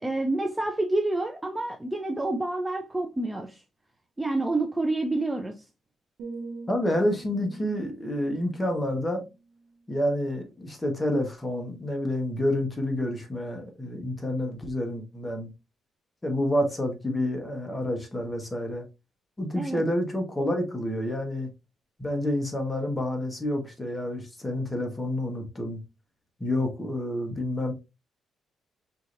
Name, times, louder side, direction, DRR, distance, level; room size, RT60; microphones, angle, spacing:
voice 1, 0.0-3.6 4.2-5.6 19.5-19.8, right 2 dB, 10° right, 0.5 m, -28 dB
sound 1, 6.2-10.2 10.5-10.9, right 3 dB, 80° right, 0.7 m, -44 dB
voice 2, 6.7-9.3 9.9-15.5 16.2-18.9 19.4-21.5 22.0-25.8 26.4-27.7, left 1 dB, 15° left, 1.3 m, -28 dB
4.8 x 2.9 x 2.5 m
cardioid pair, 90°, 0 cm